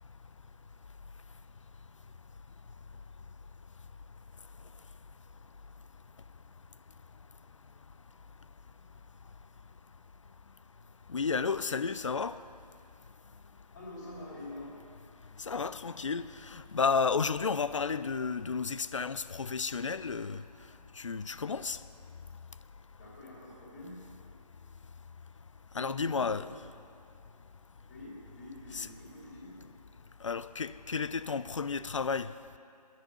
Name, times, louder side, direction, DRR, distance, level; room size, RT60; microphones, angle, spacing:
voice 1, 11.1-12.3 15.5-20.4 21.0-21.8 25.8-26.5 28.7-28.9 30.2-32.3, left 5 dB, 50° left, 0.4 m, -32 dB
voice 2, 13.7-14.8 23.0-24.0 25.7-26.6 27.9-29.6, left 1 dB, 30° left, 2.8 m, -46 dB
10.5 x 10.5 x 6.9 m
figure-of-eight pair, 160°, 21 cm